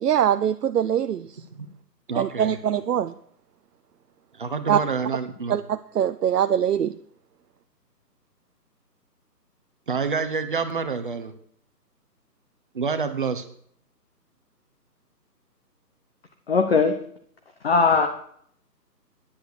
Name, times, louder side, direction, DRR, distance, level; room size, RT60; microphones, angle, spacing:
voice 1, 0.0-1.3 2.2-3.1 4.7-4.8 5.5-6.9, right 9 dB, 70° right, 0.6 m, -23 dB
voice 2, 2.1-2.6 4.4-5.6 9.9-11.3 12.7-13.4, right 5 dB, 30° right, 0.9 m, -28 dB
voice 3, 16.5-16.9 17.6-18.1, left 4 dB, 35° left, 0.8 m, -19 dB
10.0 x 8.3 x 6.2 m
figure-of-eight pair, 160°, 50 cm